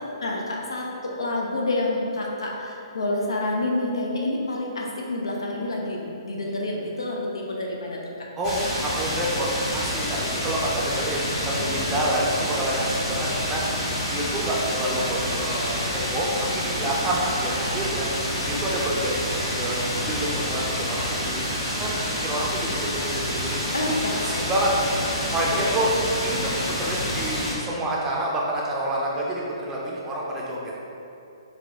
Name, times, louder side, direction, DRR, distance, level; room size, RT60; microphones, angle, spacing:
voice 1, 0.2-8.3 11.0-11.1 11.5-12.0 23.7-24.5 24.8-24.9 25.4-25.8, left 2 dB, 75° left, -1 dB, 0.5 m, -28 dB
sound 1, 8.4-27.5, equal, 25° left, 1.2 m, -28 dB
voice 2, 8.4-9.5 9.7-13.6 14.1-18.1 18.5-19.2 19.6-21.4 21.8-21.9 22.2-24.7 25.3-25.9 26.2-30.8, right 1 dB, 15° right, -4 dB, 0.5 m, -28 dB
3.9 x 2.2 x 2.8 m, 2.7 s
figure-of-eight pair, 130°, 3 cm